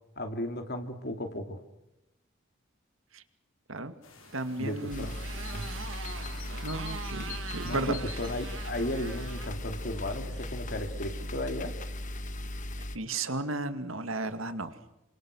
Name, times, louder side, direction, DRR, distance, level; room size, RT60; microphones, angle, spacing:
voice 1, 0.2-1.6 4.6-5.1 5.5-5.7 7.7-11.7, left 1 dB, 55° left, 6 dB, 2.7 m, -35 dB
sound 1, 4.0-11.5, left 6 dB, 80° left, 3.8 m, -50 dB
Motorcycle, 4.2-10.6, right 5 dB, 75° right, 1.9 m, -44 dB
voice 2, 4.3-5.1 6.6-7.9 12.9-14.7, right 2 dB, 90° right, 9 dB, 2.3 m, -34 dB
sound 2, 4.9-13.0, left 1 dB, 40° left, 1.6 m, -38 dB
28.5 x 25.5 x 6.5 m, 0.90 s
head